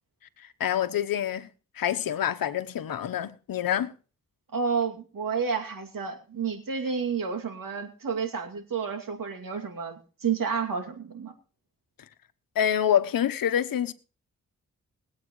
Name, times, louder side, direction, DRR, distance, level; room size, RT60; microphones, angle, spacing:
voice 1, 0.4-1.5 1.8-3.9 12.5-13.9, left 10 dB, 75° left, 0.9 m, -26 dB
voice 2, 4.5-11.3, right 6 dB, 70° right, 2.5 m, -30 dB
21.5 x 8.4 x 3.1 m
cardioid pair, 45°, 35 cm